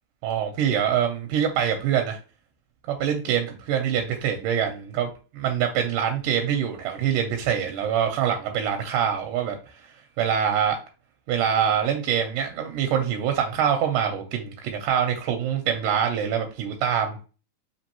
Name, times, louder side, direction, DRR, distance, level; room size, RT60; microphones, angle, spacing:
voice 1, 0.2-2.2 2.9-5.1 5.3-9.6 10.2-10.8 11.3-17.2, right 8 dB, 80° right, 3 dB, 2.0 m, -24 dB
5.2 x 3.0 x 2.8 m, 0.35 s
omnidirectional pair, 4.0 m